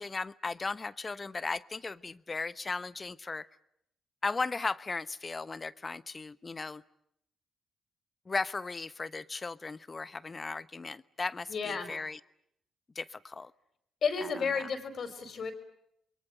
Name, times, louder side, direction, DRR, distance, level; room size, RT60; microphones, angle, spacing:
voice 1, 0.0-3.5 4.2-6.8 8.3-12.2 12.9-13.5, left 4 dB, 35° left, 16 dB, 1.0 m, -36 dB
voice 2, 11.5-11.9 14.0-15.5, left 5 dB, 60° left, 8 dB, 4.7 m, -32 dB
28.0 x 22.5 x 8.9 m, 0.76 s
hypercardioid pair, 50°, 0 cm